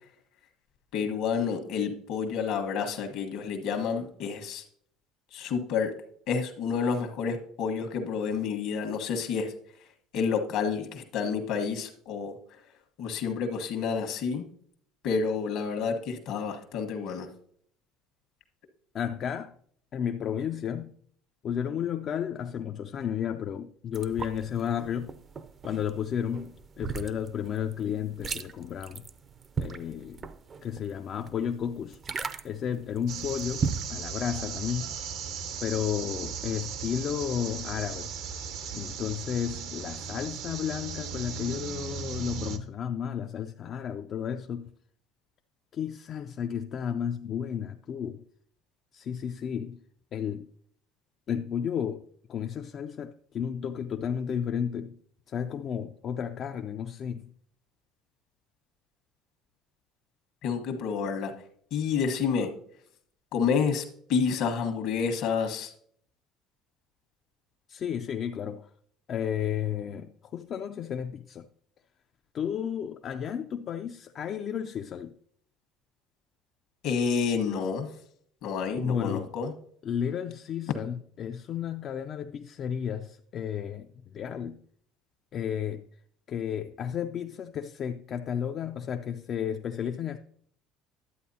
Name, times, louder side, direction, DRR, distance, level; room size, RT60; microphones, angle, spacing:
voice 1, 0.9-4.6 5.3-5.9 6.3-9.5 10.1-12.4 13.0-14.4 15.0-17.3 60.4-61.3 61.7-62.5 63.3-63.8 64.1-65.7 76.8-77.9 78.4-79.5, left 6 dB, 70° left, 1.4 m, -29 dB
voice 2, 18.9-19.5 19.9-20.9 21.4-25.2 25.6-29.0 29.6-30.2 30.6-32.0 32.4-35.0 35.6-38.1 38.7-44.7 45.7-48.2 48.9-49.8 50.1-50.5 51.3-52.0 52.3-55.0 55.3-57.3 67.7-68.7 69.1-71.5 72.3-75.2 78.8-79.3 79.8-84.6 85.3-85.9 86.3-90.2, left 8 dB, 50° left, 0.4 m, -32 dB
sound 1, 23.9-33.9, right 5 dB, 40° right, 0.5 m, -37 dB
sound 2, 33.1-42.6, right 7 dB, 70° right, 0.8 m, -37 dB
11.0 x 8.2 x 2.8 m
supercardioid pair, 80°, 0 cm